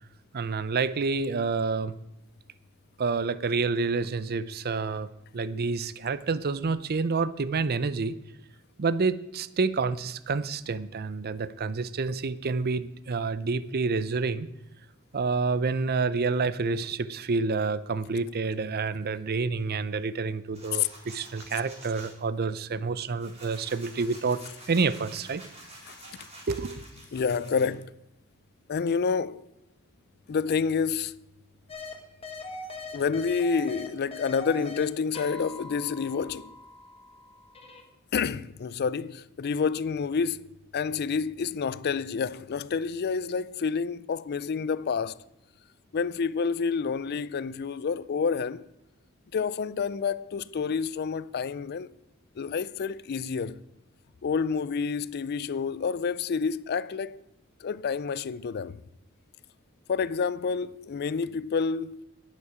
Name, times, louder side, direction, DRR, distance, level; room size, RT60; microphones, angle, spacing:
voice 1, 0.3-1.9 3.0-8.2 8.8-14.5 15.1-24.4 24.7-25.4 26.0-26.1 26.5-26.8, right 4 dB, 45° right, 0.6 m, -28 dB
sound 1, 20.5-22.1 22.7-27.7, right 1 dB, 30° right, 4.3 m, -49 dB
voice 2, 27.1-27.9 28.7-29.4 30.3-31.2 32.9-36.5 38.1-45.2 45.9-48.6 49.3-51.9 52.4-53.6 54.2-57.2 57.6-58.8 59.9-62.0, left 5 dB, 50° left, 0.4 m, -29 dB
sound 2, 31.7-31.9 32.2-34.8 35.1-37.8, left 2 dB, 30° left, 1.6 m, -41 dB
11.0 x 9.9 x 5.0 m
head